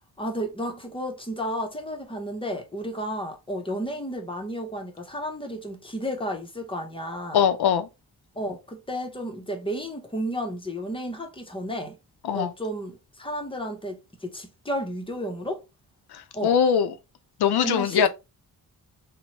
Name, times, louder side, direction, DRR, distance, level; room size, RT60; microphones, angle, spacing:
voice 1, 0.2-7.4 8.3-12.0 12.3-15.6 16.3-16.6 17.6-18.1, equal, 15° left, 0.6 m, -32 dB
voice 2, 7.3-7.9 12.3-12.5 16.1-17.0 17.4-18.1, left 7 dB, 85° left, 0.5 m, -21 dB
2.9 x 2.1 x 2.8 m
wide cardioid pair, 100°, 38 cm